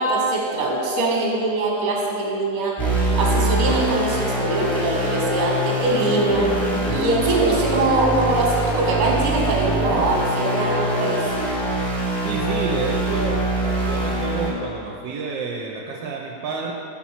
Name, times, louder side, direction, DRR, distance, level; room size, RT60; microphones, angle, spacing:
voice 1, 0.0-11.2, right 2 dB, 55° right, -2 dB, 1.4 m, -22 dB
sound 1, 2.8-14.5, right 1 dB, ahead, 0.8 m, -24 dB
voice 2, 12.2-13.4 13.9-16.7, right 4 dB, 80° right, -1 dB, 1.2 m, -29 dB
6.0 x 4.4 x 5.6 m, 2.7 s
omnidirectional pair, 2.0 m